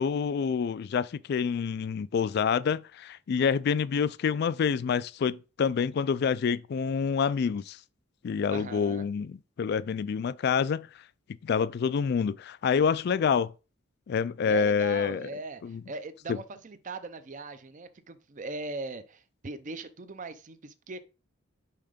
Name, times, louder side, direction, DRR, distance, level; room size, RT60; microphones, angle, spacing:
voice 1, 0.0-7.8 8.2-10.9 11.4-13.5 14.1-15.3 15.6-15.8 16.3-16.4, left 6 dB, 50° left, 0.3 m, -27 dB
voice 2, 8.5-9.1 14.4-21.0, right 3 dB, 35° right, 0.5 m, -39 dB
5.7 x 3.7 x 5.0 m
head